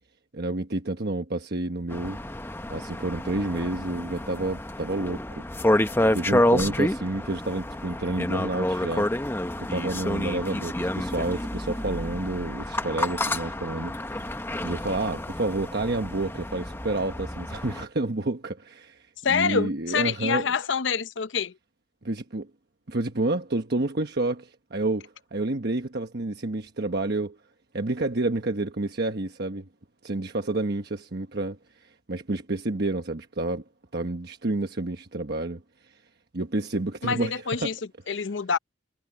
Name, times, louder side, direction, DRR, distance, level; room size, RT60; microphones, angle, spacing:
voice 1, 0.3-2.2 2.7-5.4 5.7-5.8 6.1-14.3 14.6-20.5 22.0-22.5 22.9-27.4 27.7-29.7 30.0-33.6 33.9-36.0 36.3-37.7, right 2 dB, 60° right, 1.2 m, -29 dB
sound 1, 1.9-17.8, left 1 dB, 15° left, 1.1 m, -29 dB
voice 2, 19.2-21.5 37.0-37.8 38.1-38.6, left 6 dB, 80° left, 0.7 m, -26 dB
head